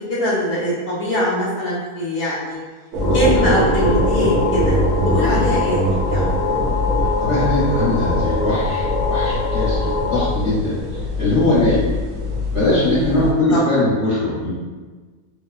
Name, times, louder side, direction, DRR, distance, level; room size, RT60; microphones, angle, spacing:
voice 1, 0.0-2.6 3.1-4.8 5.0-6.3 6.6-7.2 8.4-8.5 13.5-13.6, equal, 15° left, -12 dB, 0.9 m, -23 dB
sound 1, 2.9-13.3, left 1 dB, 85° right, 1.2 m, -22 dB
sound 2, 3.0-10.3, left 4 dB, 70° left, 0.5 m, -25 dB
voice 2, 7.2-11.9 12.5-14.5, left 2 dB, 50° left, -11 dB, 1.2 m, -20 dB
3.0 x 2.3 x 2.4 m, 1.4 s
omnidirectional pair, 1.6 m